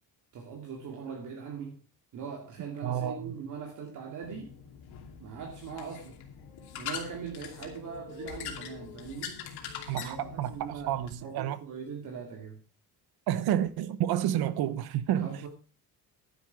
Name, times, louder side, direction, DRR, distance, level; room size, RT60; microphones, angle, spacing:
voice 1, 0.3-1.8 2.1-4.5 5.2-6.2 6.8-9.4 9.9-12.6 15.2-15.5, right 6 dB, 50° right, 2.6 m, -41 dB
voice 2, 2.8-3.3 9.9-11.6 13.3-15.3, right 11 dB, 75° right, 1.1 m, -30 dB
sound 1, 4.2-11.1, left 8 dB, 85° left, 2.8 m, -43 dB
11.0 x 10.0 x 4.6 m
cardioid pair, 175°, 37 cm